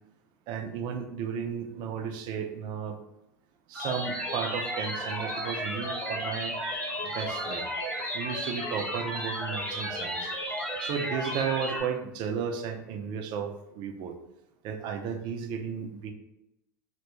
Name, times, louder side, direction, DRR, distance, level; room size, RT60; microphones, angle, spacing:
voice 1, 0.5-3.0 3.7-6.6 7.0-7.7 8.1-10.3 10.8-14.2 14.6-16.1, right 7 dB, 50° right, 5 dB, 0.4 m, -34 dB
sound 1, 3.7-11.8, equal, 10° left, 1.0 m, -33 dB
2.1 x 2.1 x 2.9 m, 0.89 s
hypercardioid pair, 90°, 10 cm